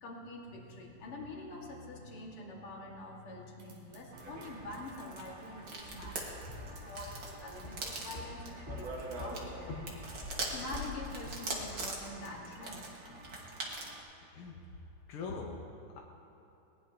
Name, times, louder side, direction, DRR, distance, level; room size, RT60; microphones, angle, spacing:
voice 1, 0.0-12.9 13.2-13.3, left 2 dB, 45° left, -2 dB, 2.5 m, -46 dB
sound 1, 3.6-4.5 6.1-7.6, right 4 dB, 90° right, 3.9 m, -61 dB
sound 2, 4.1-14.0, right 2 dB, 45° right, 2.1 m, -43 dB
Walk footsteps, 5.8-11.9, left 2 dB, 20° left, 1.6 m, -46 dB
voice 2, 15.1-16.0, left 4 dB, 65° left, 0 dB, 1.5 m, -42 dB
20.5 x 19.5 x 2.9 m, 2.9 s
omnidirectional pair, 3.6 m